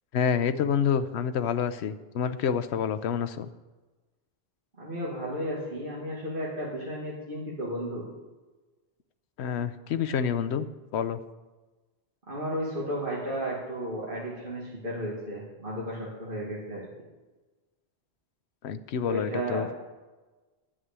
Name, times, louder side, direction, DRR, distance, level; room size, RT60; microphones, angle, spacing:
voice 1, 0.1-3.5 9.4-10.7 10.9-11.2 18.6-19.7, left 7 dB, 85° left, 11 dB, 0.9 m, -28 dB
voice 2, 4.8-8.1 12.3-16.9 19.0-19.7, equal, 55° right, -6 dB, 2.2 m, -33 dB
11.0 x 6.2 x 8.2 m, 1.2 s
omnidirectional pair, 1.1 m